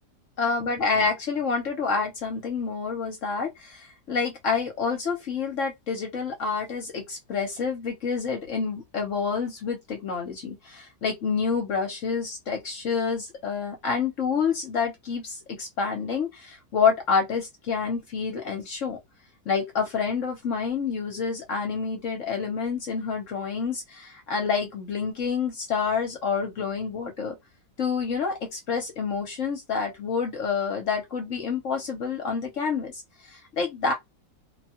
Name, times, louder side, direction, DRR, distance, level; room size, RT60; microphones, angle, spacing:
voice 1, 0.4-19.0 19.5-27.4 27.8-33.9, left 5 dB, 55° left, 1.0 m, -28 dB
2.8 x 2.3 x 2.7 m
omnidirectional pair, 1.8 m